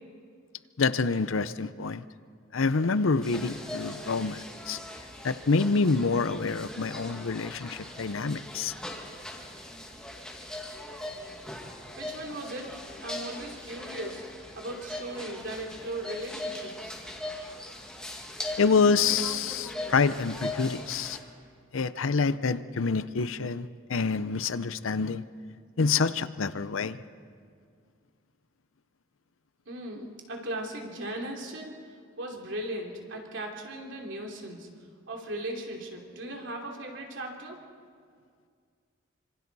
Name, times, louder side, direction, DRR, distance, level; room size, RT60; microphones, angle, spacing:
voice 1, 0.8-2.0 2.5-4.8 5.2-8.7 18.6-21.2 21.7-25.2 25.8-27.0, left 4 dB, 85° left, 14 dB, 0.7 m, -27 dB
sound 1, 3.2-21.2, left 1 dB, 5° left, 2.0 m, -40 dB
voice 2, 11.9-14.2 14.5-17.0 29.7-31.7 32.2-34.7 35.1-37.6, right 1 dB, 65° right, 0 dB, 3.1 m, -38 dB
26.0 x 25.5 x 4.2 m, 2.1 s
head